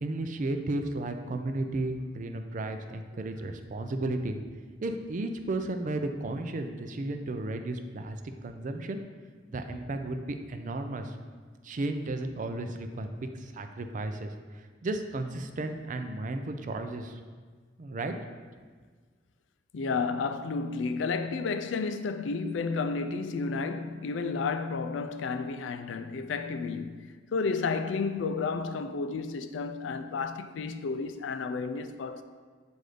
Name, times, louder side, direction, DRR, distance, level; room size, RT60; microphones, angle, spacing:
voice 1, 0.0-4.3 4.8-9.0 9.5-11.1 11.6-14.3 14.8-17.2 17.8-18.1, right 2 dB, 45° right, 0.4 m, -34 dB
voice 2, 19.7-32.2, left 4 dB, 85° left, 0.4 m, -32 dB
7.6 x 2.6 x 4.9 m
head